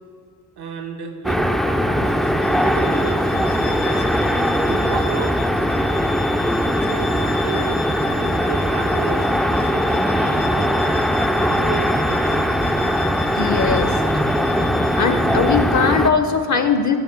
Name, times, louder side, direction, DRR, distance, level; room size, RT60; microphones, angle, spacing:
voice 1, 0.6-4.1 4.6-5.4 6.6-7.7 8.2-9.3 9.6-10.8 11.4-12.4 15.3-15.6 16.5-16.7, right 5 dB, 70° right, 5 dB, 1.0 m, -32 dB
sound 1, 1.2-16.1, equal, ahead, 0.3 m, -20 dB
Bowed string instrument, 1.9-15.8, left 6 dB, 80° left, 1.1 m, -35 dB
voice 2, 13.3-14.0 15.0-17.0, left 5 dB, 45° left, 8 dB, 0.6 m, -19 dB
7.2 x 5.6 x 7.2 m, 2.2 s
cardioid pair, 75°, 40 cm